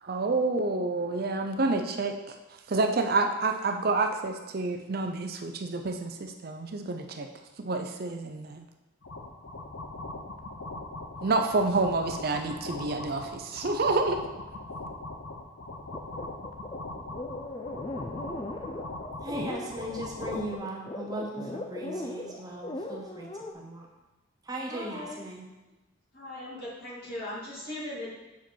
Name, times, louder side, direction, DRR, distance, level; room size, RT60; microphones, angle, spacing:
voice 1, 0.0-2.3 2.7-7.3 7.6-8.6 11.2-14.2, right 3 dB, 50° right, 5 dB, 0.5 m, -28 dB
sound 1, 9.0-20.6, left 2 dB, 75° left, 0.7 m, -41 dB
sound 2, 15.9-23.5, left 2 dB, 25° left, 0.4 m, -38 dB
voice 2, 19.2-23.9 24.4-25.5, right 1 dB, 20° right, -1 dB, 0.8 m, -38 dB
voice 3, 24.7-25.2 26.1-28.1, left 1 dB, 50° left, -6 dB, 2.4 m, -38 dB
6.9 x 5.0 x 4.5 m, 1.1 s
head